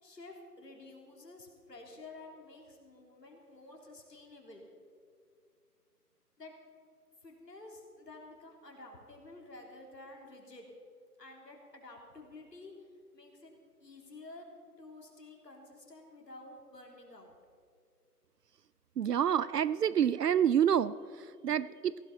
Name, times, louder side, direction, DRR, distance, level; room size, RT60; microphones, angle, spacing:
voice 1, 0.0-4.7 6.4-6.5 7.2-10.7 11.2-12.7 13.1-13.5 13.8-14.5 14.8-17.3, left 2 dB, 80° left, 1 dB, 3.6 m, -51 dB
voice 2, 19.0-22.0, right 9 dB, 75° right, 19 dB, 0.5 m, -28 dB
16.5 x 16.0 x 4.3 m, 2.2 s
figure-of-eight pair, 165°, 48 cm